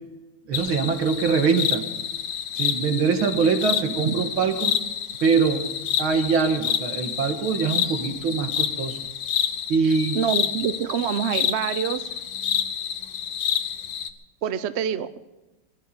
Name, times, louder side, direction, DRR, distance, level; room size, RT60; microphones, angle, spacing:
sound 1, 0.5-14.1, left 8 dB, 70° left, 1.5 m, -28 dB
voice 1, 0.5-1.9 2.6-4.7 5.2-5.7 6.0-9.0 9.7-10.2, right 5 dB, 85° right, 7 dB, 2.2 m, -23 dB
voice 2, 9.8-12.1 14.4-15.2, right 8 dB, 70° right, 12 dB, 0.6 m, -26 dB
20.5 x 11.5 x 5.4 m, 1.1 s
omnidirectional pair, 2.2 m